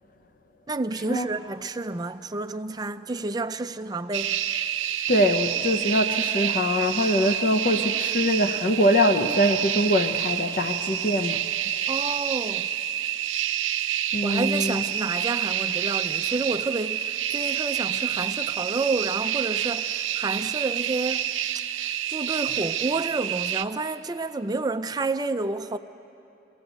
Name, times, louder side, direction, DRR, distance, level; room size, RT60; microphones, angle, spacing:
voice 1, 0.7-4.4 11.9-12.7 14.2-21.3 21.8-25.8, right 3 dB, 20° right, 0.4 m, -30 dB
sound 1, 4.1-23.6, right 10 dB, 90° right, 0.7 m, -28 dB
voice 2, 5.1-11.4 14.1-14.8, equal, 45° left, 0.6 m, -23 dB
23.5 x 16.5 x 8.0 m
head